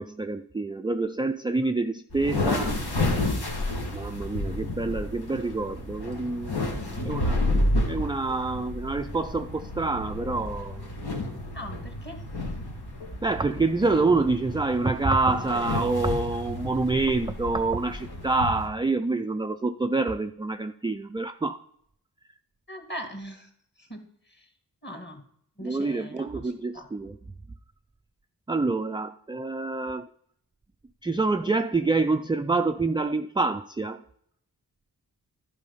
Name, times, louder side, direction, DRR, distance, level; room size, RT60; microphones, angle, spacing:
voice 1, 0.0-2.7 3.9-6.5 7.1-7.4 7.9-10.9 13.2-21.6 25.6-27.2 28.5-30.1 31.0-34.0, right 3 dB, 10° right, 8 dB, 0.4 m, -27 dB
sound 1, 2.1-18.7, left 2 dB, 70° left, 2.0 m, -31 dB
voice 2, 6.7-7.3 11.5-12.2 22.7-23.5 23.8-24.0 24.4-24.5 24.8-25.2 25.6-26.9, equal, 25° left, 4 dB, 2.1 m, -40 dB
10.5 x 4.8 x 5.5 m, 0.69 s
cardioid pair, 50°, 40 cm